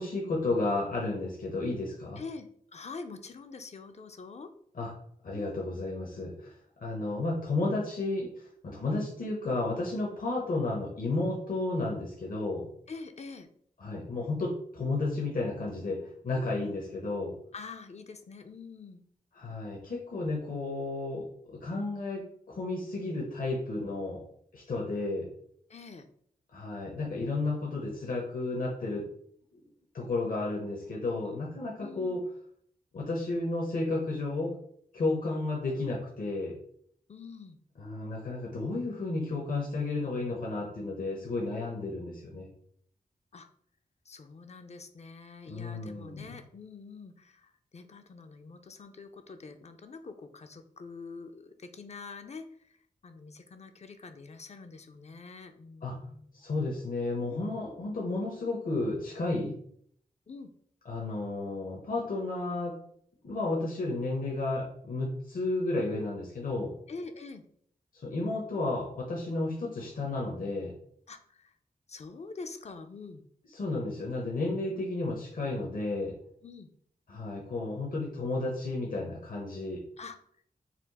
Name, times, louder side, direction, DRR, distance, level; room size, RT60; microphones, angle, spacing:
voice 1, 0.0-2.2 4.8-4.9 5.2-6.5 6.8-12.7 13.8-16.0 16.2-17.3 19.4-24.2 24.5-25.3 26.5-29.1 29.5-29.6 29.9-32.2 32.9-34.5 34.9-36.6 37.8-42.5 45.5-46.3 55.8-55.9 56.3-59.6 60.9-62.7 63.2-66.7 67.9-70.7 73.5-76.1 77.1-79.8, left 2 dB, 70° left, -2 dB, 0.9 m, -32 dB
voice 2, 2.2-4.5 12.9-13.5 16.3-16.7 17.5-19.0 25.7-26.1 31.2-31.5 31.8-32.2 37.1-37.6 43.3-43.5 44.1-52.8 53.0-56.4 57.3-57.4 60.3-60.5 66.9-67.4 71.1-71.5 71.9-73.2 76.4-76.7 80.0-80.2, left 4 dB, 45° left, 8 dB, 0.5 m, -45 dB
4.3 x 2.4 x 4.0 m, 0.65 s
wide cardioid pair, 75°, 15 cm